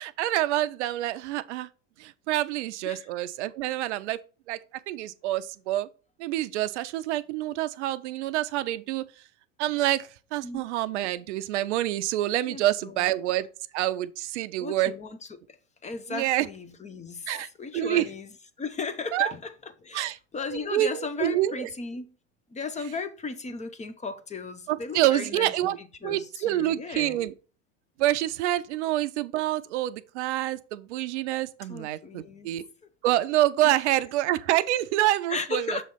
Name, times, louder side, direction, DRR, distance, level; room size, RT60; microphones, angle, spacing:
voice 1, 0.0-1.7 2.0-4.2 4.5-4.6 4.9-5.9 6.2-9.0 9.6-13.5 13.7-14.9 16.1-16.5 17.3-17.5 17.7-18.1 19.1-19.3 19.9-20.2 20.5-21.7 24.7-25.8 26.0-27.3 28.0-32.6 33.0-35.8, right 14 dB, 75° right, 0.6 m, -27 dB
voice 2, 12.5-13.0 14.6-15.6 15.8-18.3 18.6-19.5 19.8-22.1 22.5-27.2 31.7-32.5 33.6-33.7 35.3-35.8, left 4 dB, 20° left, 0.7 m, -36 dB
6.4 x 3.1 x 5.7 m
hypercardioid pair, 95°, 36 cm